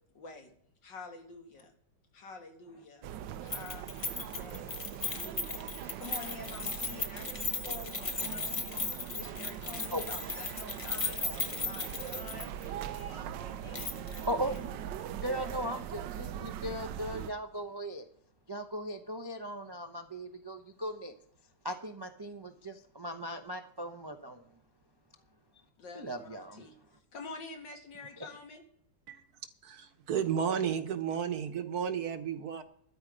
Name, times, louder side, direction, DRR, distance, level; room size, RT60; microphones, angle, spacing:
voice 1, 0.1-0.5 0.8-1.7 2.1-3.1 3.4-3.9 4.2-4.8 5.1-11.3 11.5-14.7 25.2-25.3 25.8-26.8 27.1-28.6, left 4 dB, 80° left, 4 dB, 2.5 m, -48 dB
sound 1, 3.0-17.3, right 10 dB, 85° right, 1.3 m, -41 dB
Keys jangling, 3.5-12.7 13.0-13.1 13.7-14.3 14.6-14.7, left 4 dB, 35° left, 0.5 m, -37 dB
voice 2, 14.3-18.1 18.5-21.1 21.6-24.4 25.9-26.6 28.2-28.3, equal, 40° right, 6 dB, 0.3 m, -38 dB
voice 3, 29.6-32.6, right 8 dB, 60° right, 9 dB, 1.4 m, -33 dB
13.0 x 10.0 x 5.1 m, 0.68 s
omnidirectional pair, 1.9 m